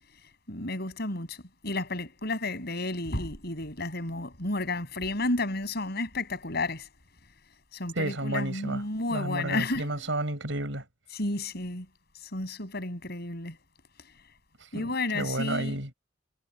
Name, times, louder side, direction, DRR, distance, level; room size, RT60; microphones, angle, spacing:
voice 1, 0.5-1.4 1.6-6.9 7.7-9.9 11.1-11.9 12.3-13.6 14.7-15.8, left 2 dB, 60° left, 6.9 m, -32 dB
voice 2, 7.9-8.8 9.1-10.8 14.6-15.9, right 2 dB, 80° right, 5.7 m, -32 dB
head